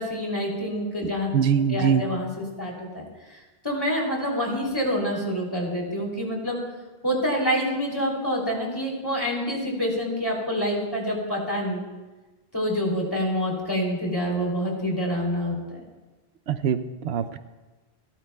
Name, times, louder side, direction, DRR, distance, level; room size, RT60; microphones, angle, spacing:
voice 1, 0.0-1.3 1.7-6.6 7.0-11.9 12.5-15.8, equal, 20° left, -2 dB, 3.1 m, -27 dB
voice 2, 1.0-2.1 16.5-17.4, right 7 dB, 80° right, 10 dB, 0.9 m, -24 dB
28.0 x 12.5 x 2.3 m, 1.2 s
omnidirectional pair, 1.1 m